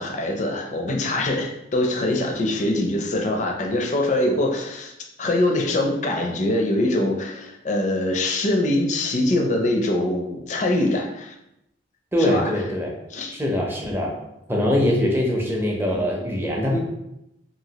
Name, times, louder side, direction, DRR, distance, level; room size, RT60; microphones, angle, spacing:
voice 1, 0.0-4.9 5.2-11.4 12.2-12.6 13.1-13.4, left 1 dB, 40° left, 3 dB, 0.4 m, -23 dB
voice 2, 12.1-12.9 13.3-14.1 14.5-16.8, left 1 dB, 10° right, -1 dB, 0.5 m, -22 dB
3.0 x 2.6 x 2.8 m, 0.84 s
head